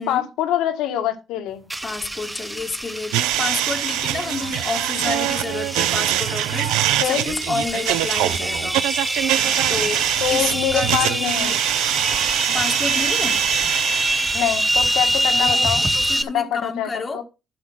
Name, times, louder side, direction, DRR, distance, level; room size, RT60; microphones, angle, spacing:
voice 1, 0.0-1.7 7.0-7.3 10.2-11.6 14.3-15.9 16.3-17.2, left 10 dB, 80° left, 1.8 m, -24 dB
sound 1, 1.7-16.2, right 1 dB, 10° right, 1.0 m, -25 dB
voice 2, 1.8-8.8 9.7-11.6 12.5-13.5 15.4-15.7 15.9-17.2, left 4 dB, 30° left, 1.6 m, -30 dB
sound 2, 3.1-14.7, right 14 dB, 85° right, 0.5 m, -24 dB
12.0 x 5.0 x 5.7 m
cardioid pair, 90°, 0 cm